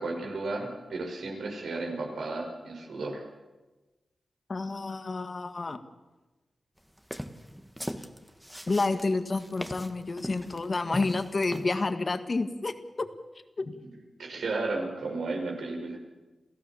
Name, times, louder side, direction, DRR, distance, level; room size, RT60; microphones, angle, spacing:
voice 1, 0.0-3.2 13.8-13.9 14.2-16.0, right 3 dB, 85° right, 1 dB, 5.4 m, -33 dB
voice 2, 4.5-5.8 8.7-13.1 13.6-13.8, left 3 dB, 45° left, 8 dB, 1.8 m, -29 dB
sound 1, 7.0-11.7, equal, 5° right, 1.5 m, -39 dB
28.0 x 15.5 x 7.1 m, 1.1 s
wide cardioid pair, 80°, 0 cm